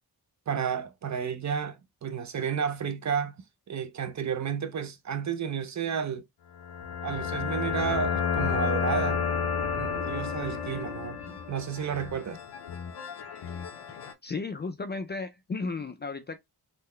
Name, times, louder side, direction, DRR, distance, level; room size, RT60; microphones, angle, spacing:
voice 1, 0.5-3.4 3.7-6.2 7.0-9.3 9.8-12.4, right 7 dB, 45° right, 0.5 m, -32 dB
sound 1, 6.6-14.1, left 6 dB, 85° left, 0.8 m, -31 dB
voice 2, 14.2-16.4, left 4 dB, 30° left, 0.3 m, -34 dB
3.8 x 2.1 x 3.1 m
wide cardioid pair, 105°, 39 cm